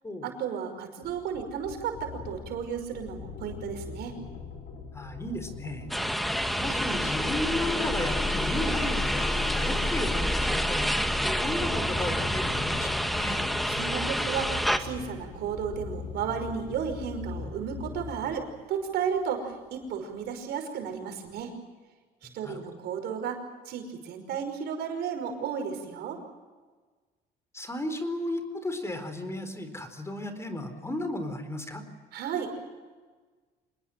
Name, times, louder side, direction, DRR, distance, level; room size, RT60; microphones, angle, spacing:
voice 1, 0.2-4.1 13.7-21.5 22.2-23.4 23.7-26.2 32.1-32.5, right 7 dB, 75° right, 5 dB, 5.5 m, -33 dB
sound 1, 1.0-18.5, left 5 dB, 80° left, 5.2 m, -42 dB
voice 2, 4.9-5.9 6.6-10.9 11.4-13.4 22.2-22.6 27.5-31.8, left 1 dB, 15° left, 9 dB, 4.1 m, -34 dB
sound 2, 5.6-5.7 6.1-17.1 17.9-18.0 18.4-18.5, left 3 dB, 35° left, 2.5 m, -36 dB
sound 3, 5.9-14.8, equal, ahead, 1.7 m, -28 dB
26.5 x 20.5 x 7.7 m, 1.4 s
cardioid pair, 110°, 17 cm